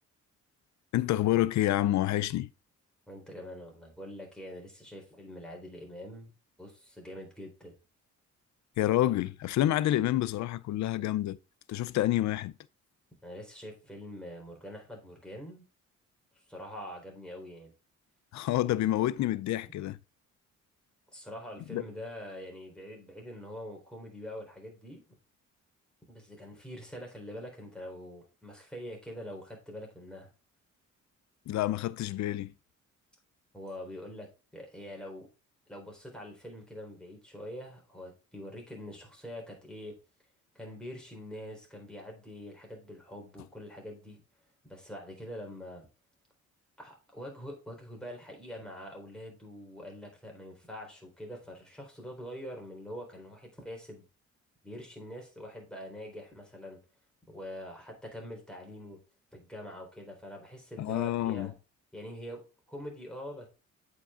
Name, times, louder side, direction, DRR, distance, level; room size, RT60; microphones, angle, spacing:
voice 1, 0.9-2.5 8.8-11.4 11.7-12.5 18.3-20.0 21.7-21.8 31.5-32.5 60.8-61.5, left 14 dB, 70° left, 0.5 m, -28 dB
voice 2, 3.1-6.3 6.6-7.7 13.2-15.6 16.5-17.7 19.7-19.8 21.1-25.0 26.1-30.3 33.5-35.3 35.7-40.0 40.5-44.2 44.6-45.9 46.8-54.0 54.6-56.8 57.3-59.0 59.3-61.5 61.9-63.5, equal, 5° left, 3.8 m, -44 dB
8.2 x 5.3 x 3.7 m
cardioid pair, 90°, 30 cm